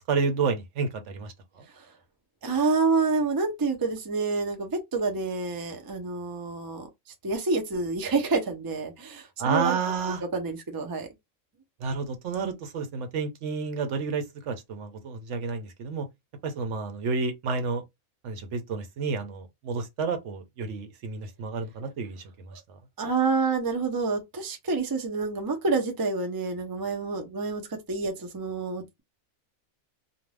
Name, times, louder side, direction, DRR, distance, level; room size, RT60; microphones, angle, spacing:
voice 1, 0.1-1.7 9.4-10.2 11.8-16.1 16.4-17.8 18.2-22.8, right 5 dB, 65° right, 0.9 m, -30 dB
voice 2, 2.4-6.9 7.2-9.8 10.3-11.1 23.0-29.0, right 4 dB, 35° right, 0.3 m, -28 dB
2.5 x 2.3 x 3.2 m
omnidirectional pair, 1.4 m